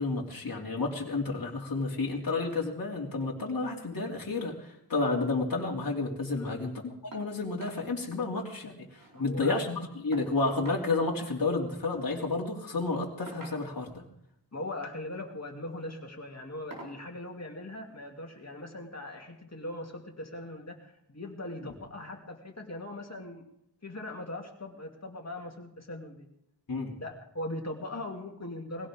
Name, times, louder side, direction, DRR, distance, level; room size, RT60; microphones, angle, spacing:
voice 1, 0.0-6.7 7.0-8.8 9.2-13.9 21.6-21.7 26.7-26.9, left 3 dB, 55° left, -2 dB, 2.8 m, -31 dB
sound 1, 7.1-7.3 7.6-7.8 8.2-8.3 8.6-9.2 10.1-10.9 12.1-12.3 13.3-13.9 15.0-15.3 15.7-15.9 16.7-17.0 18.3-18.4 18.9-19.0, right 2 dB, 50° right, 4.4 m, -47 dB
voice 2, 9.1-9.7 14.5-23.4 23.8-26.3 27.0-28.9, left 1 dB, 35° left, 1 dB, 2.9 m, -40 dB
21.5 x 16.5 x 3.7 m, 0.76 s
wide cardioid pair, 60°, 42 cm